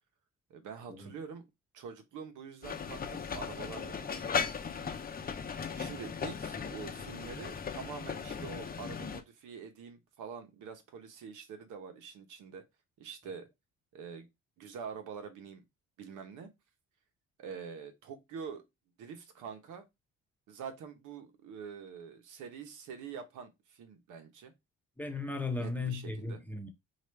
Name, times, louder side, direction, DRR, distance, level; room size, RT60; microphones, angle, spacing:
voice 1, 0.5-1.5 1.7-4.2 5.8-12.6 13.0-13.5 13.9-14.3 14.6-15.6 16.0-16.5 17.4-18.6 19.0-19.8 20.5-24.5 25.6-26.4, right 6 dB, 85° right, 0.9 m, -45 dB
sound 1, 2.6-9.2, left 6 dB, 30° left, 0.7 m, -37 dB
voice 2, 25.0-26.7, left 3 dB, 5° left, 0.9 m, -36 dB
4.8 x 2.5 x 3.2 m
cardioid pair, 90°, 30 cm